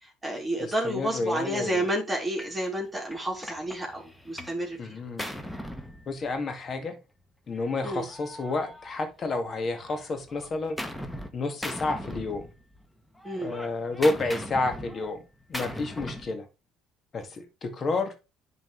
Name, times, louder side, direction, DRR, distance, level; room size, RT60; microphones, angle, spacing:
voice 1, 0.0-5.0 7.8-8.1 13.2-13.5, right 1 dB, 15° right, 3.3 m, -30 dB
voice 2, 0.6-1.8 4.8-5.2 6.1-7.0 7.5-10.8 11.3-12.5 13.4-15.2 15.5-16.5 17.1-18.1, left 3 dB, 45° left, 2.0 m, -30 dB
Gunshot gunfire, 2.4-2.6 3.1-4.6 4.9-6.6 7.5-9.4 9.7-11.3 11.6-12.8 13.1-16.4, equal, 5° left, 1.3 m, -39 dB
11.0 x 4.1 x 3.3 m
hypercardioid pair, 65°, 0 cm